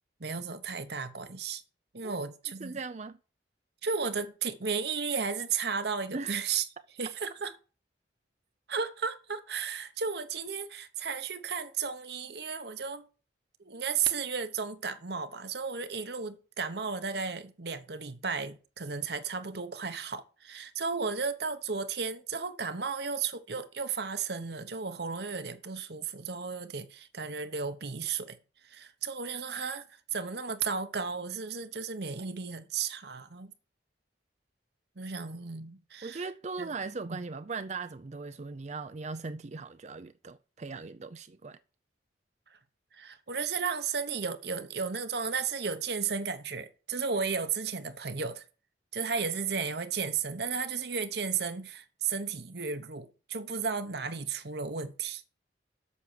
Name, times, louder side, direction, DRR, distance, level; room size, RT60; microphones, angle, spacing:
voice 1, 0.2-1.6 1.9-2.8 3.8-6.6 7.0-7.5 8.7-13.0 13.6-28.4 28.6-33.5 35.0-36.2 36.6-36.7 37.0-37.2 42.9-48.4 48.9-55.3, right 5 dB, 60° right, 1.1 m, -34 dB
voice 2, 2.6-3.2 6.1-6.4 36.0-41.6, right 4 dB, 40° right, 0.5 m, -39 dB
8.3 x 6.2 x 6.8 m
head